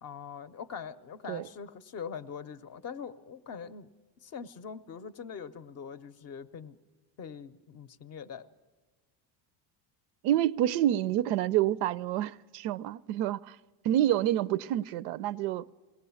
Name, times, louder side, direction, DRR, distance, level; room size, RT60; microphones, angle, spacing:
voice 1, 0.0-3.9 4.2-6.8 7.2-8.5, left 6 dB, 35° left, 0.6 m, -42 dB
voice 2, 10.2-13.6 13.8-15.7, right 12 dB, 80° right, 0.6 m, -28 dB
21.5 x 17.5 x 7.0 m
cardioid pair, 155°, 48 cm